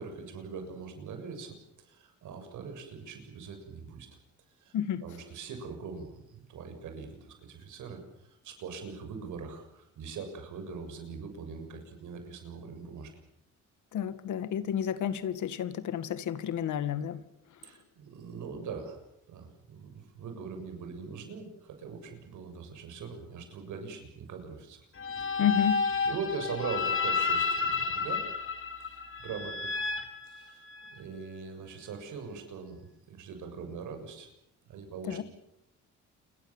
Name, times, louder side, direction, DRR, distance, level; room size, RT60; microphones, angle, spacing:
voice 1, 0.0-4.1 4.6-4.8 5.0-13.1 17.6-19.0 19.3-24.9 25.2-25.4 26.1-28.3 28.9-29.8 30.2-30.7 30.9-34.3 34.6-35.2, right 5 dB, 80° right, 6 dB, 7.2 m, -42 dB
voice 2, 13.9-17.2 25.4-25.8 35.1-35.2, left 9 dB, 75° left, 12 dB, 2.1 m, -30 dB
sound 1, 25.0-31.0, left 5 dB, 45° left, 4.5 m, -31 dB
28.5 x 23.0 x 7.4 m, 0.79 s
cardioid pair, 90°, 30 cm